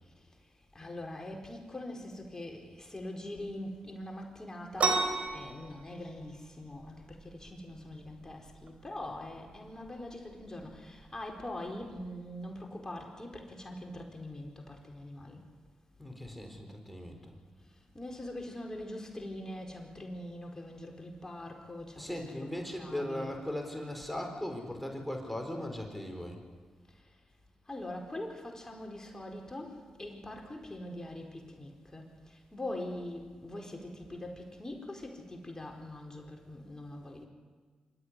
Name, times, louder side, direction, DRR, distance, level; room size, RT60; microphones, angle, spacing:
voice 1, 0.7-5.0 5.3-15.4 17.9-23.3 27.7-32.1 32.5-37.3, left 1 dB, 25° left, 1 dB, 4.5 m, -43 dB
sound 1, 4.8-12.2, right 4 dB, 65° right, 3.1 m, -36 dB
voice 2, 16.0-17.3 21.9-26.4, left 1 dB, 5° left, 3 dB, 4.3 m, -38 dB
26.0 x 13.0 x 9.7 m, 1.5 s
supercardioid pair, 50°, 3 cm